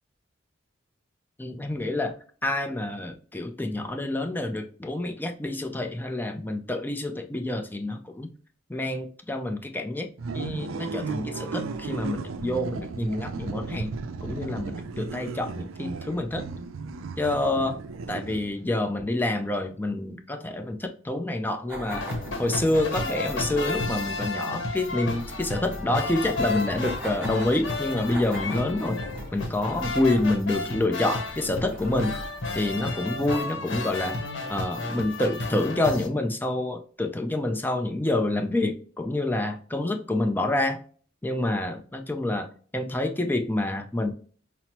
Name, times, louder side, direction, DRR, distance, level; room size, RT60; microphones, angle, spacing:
voice 1, 1.4-2.2 2.4-8.3 8.7-13.9 14.2-16.5 17.2-17.8 18.1-22.1 22.4-29.0 29.3-32.2 32.6-34.2 34.5-40.8 41.2-44.1, left 2 dB, 10° left, 0.4 m, -27 dB
sound 1, 10.2-18.7, right 4 dB, 80° right, 0.4 m, -35 dB
sound 2, 21.7-33.9, equal, 10° right, 1.1 m, -40 dB
sound 3, 21.9-36.1, left 3 dB, 65° left, 0.8 m, -32 dB
5.6 x 2.0 x 2.9 m
head